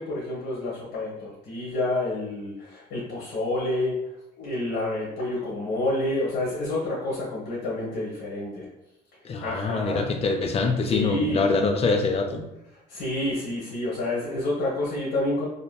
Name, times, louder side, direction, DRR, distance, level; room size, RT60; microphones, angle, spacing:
voice 1, 0.0-4.0 4.4-8.7 9.4-10.1 10.9-11.4 12.9-15.5, left 2 dB, 80° left, -6 dB, 1.0 m, -28 dB
voice 2, 9.2-12.4, left 3 dB, 35° left, 4 dB, 0.4 m, -24 dB
2.7 x 2.6 x 2.2 m, 0.88 s
cardioid pair, 110°, 17 cm